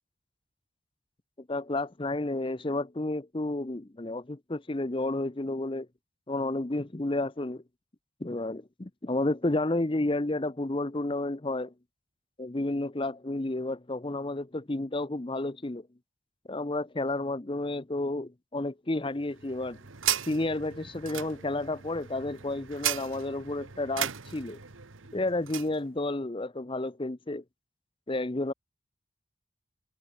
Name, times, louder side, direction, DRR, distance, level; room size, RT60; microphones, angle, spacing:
voice 1, 1.5-5.9 6.3-7.6 8.2-11.7 12.4-15.9 16.5-19.8 20.3-24.6 25.1-27.4 28.1-28.5, left 2 dB, 25° left, 0.7 m, -31 dB
sound 1, 19.2-25.8, right 11 dB, 75° right, 1.4 m, -36 dB
head